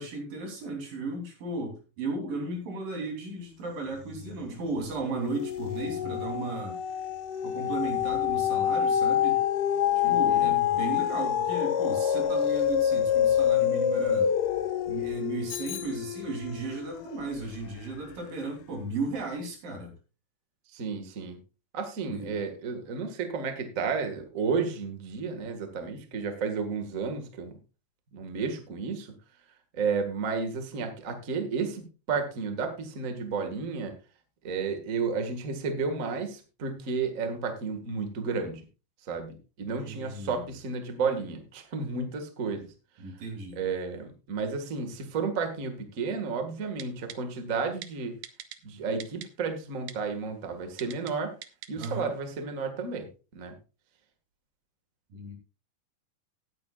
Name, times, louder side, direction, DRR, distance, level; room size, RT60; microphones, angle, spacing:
voice 1, 0.0-6.7 7.4-9.4 10.1-14.3 14.9-19.9 22.1-22.4 39.8-40.5 43.0-43.6 51.8-52.1 55.1-55.4, right 3 dB, 85° right, 2 dB, 4.9 m, -35 dB
sound 1, 4.1-4.6 5.0-17.5 18.0-18.1, left 9 dB, 80° left, 2.4 m, -27 dB
voice 2, 10.0-10.5 20.7-21.4 21.7-27.5 28.1-29.1 29.7-33.9 34.4-38.6 39.1-42.7 43.5-48.2 48.6-51.3 51.7-53.1 53.3-53.5, right 5 dB, 35° right, 6 dB, 1.5 m, -32 dB
Bicycle bell, 15.5-16.7, left 10 dB, 60° left, 2.5 m, -42 dB
Typing, 46.8-47.2 47.8-47.9 48.2-48.6 49.0-49.3 49.9-50.0 50.8-51.1 51.4-51.9 52.2-52.3, right 11 dB, 70° right, 2.0 m, -41 dB
18.0 x 9.2 x 2.4 m, 0.31 s
omnidirectional pair, 3.8 m